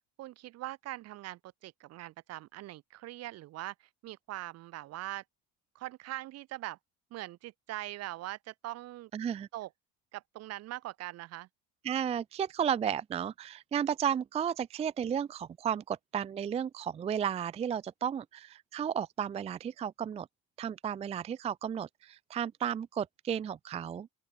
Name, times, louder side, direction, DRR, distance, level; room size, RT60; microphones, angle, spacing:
voice 1, 0.2-5.2 5.7-6.8 7.1-9.1 9.5-9.7 10.1-11.5, right 16 dB, 55° right, 0.9 m, -42 dB
voice 2, 9.1-9.5 11.8-20.3 20.6-24.1, right 8 dB, 20° right, 0.4 m, -33 dB
open air
cardioid pair, 155°, 31 cm